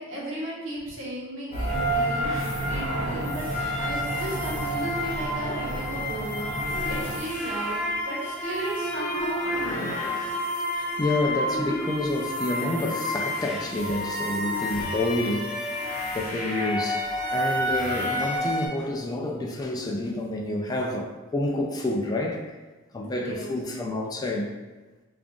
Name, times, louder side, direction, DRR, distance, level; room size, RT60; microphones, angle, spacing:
voice 1, 0.0-2.3 2.6-3.5 3.7-6.5 6.9-7.8 8.0-10.1 23.0-23.5, right 1 dB, 75° right, -5 dB, 1.2 m, -35 dB
sound 1, 1.5-18.7, equal, 35° left, 0.8 m, -29 dB
sound 2, 1.7-7.2, right 2 dB, 50° right, 0.6 m, -34 dB
voice 2, 10.7-15.6 16.1-17.0 17.3-22.5 22.9-24.5, left 2 dB, 20° left, 1 dB, 0.3 m, -29 dB
5.1 x 2.4 x 2.4 m, 1.2 s
head